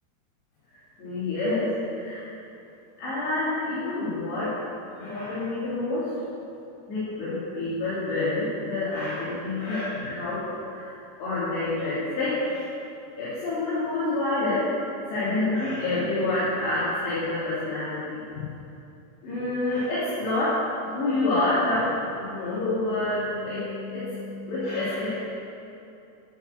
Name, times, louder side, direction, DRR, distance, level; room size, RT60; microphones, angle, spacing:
voice 1, 1.0-2.2 3.0-4.6 4.9-6.1 6.9-10.9 11.2-12.6 13.2-18.5 19.2-20.6 20.9-25.2, left 2 dB, 85° left, -12 dB, 5.1 m, -28 dB
11.5 x 7.3 x 8.1 m, 2.7 s
omnidirectional pair, 4.8 m